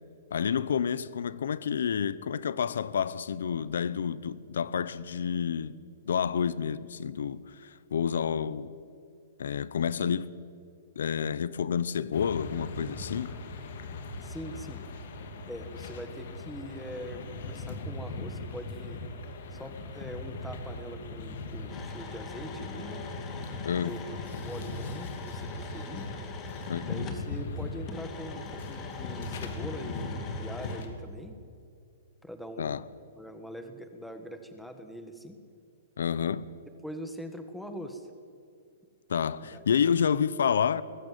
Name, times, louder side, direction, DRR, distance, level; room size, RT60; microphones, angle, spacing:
voice 1, 0.3-5.7 6.1-8.7 9.4-10.4 11.0-13.4 23.6-23.9 26.7-27.1 32.6-32.8 36.0-36.5 39.1-40.8, left 7 dB, 85° left, 0.8 m, -29 dB
sound 1, 12.1-30.9, left 2 dB, 60° left, 2.6 m, -39 dB
voice 2, 14.2-14.8 15.5-19.1 19.5-23.1 23.8-26.1 26.8-31.4 32.2-32.8 33.2-35.4 36.8-38.1 39.4-40.1, equal, ahead, 1.4 m, -43 dB
sound 2, 21.7-27.3 27.9-30.8, left 5 dB, 20° left, 2.2 m, -44 dB
21.0 x 13.5 x 9.3 m
hypercardioid pair, 165°, 0 cm